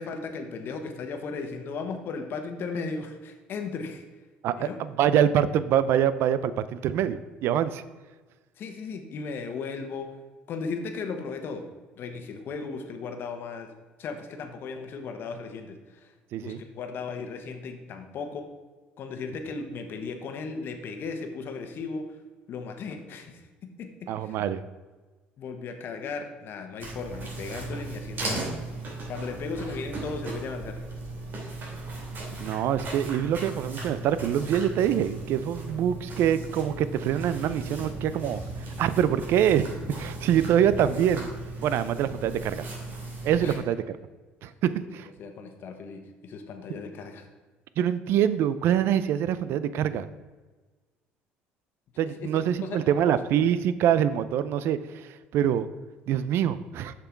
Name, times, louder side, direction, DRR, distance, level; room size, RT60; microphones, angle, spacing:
voice 1, 0.0-4.0 4.6-4.8 8.6-10.1 10.5-11.7 12.0-13.7 14.0-16.1 16.4-18.5 19.0-22.2 22.5-24.4 25.4-28.5 29.1-30.8 43.4-43.6 44.8-44.9 45.2-47.3 52.2-52.3 52.6-53.2, left 4 dB, 55° left, 6 dB, 1.2 m, -36 dB
voice 2, 4.4-7.8 16.3-16.6 24.1-24.6 32.4-38.4 38.8-39.7 40.0-41.3 41.6-42.6 43.2-43.8 44.4-45.1 47.8-50.1 52.0-55.7 56.1-56.9, right 9 dB, 65° right, 14 dB, 0.5 m, -25 dB
sound 1, 26.8-43.5, right 2 dB, 50° right, 2.5 m, -37 dB
6.8 x 6.0 x 4.6 m, 1.3 s
supercardioid pair, 90°, 4 cm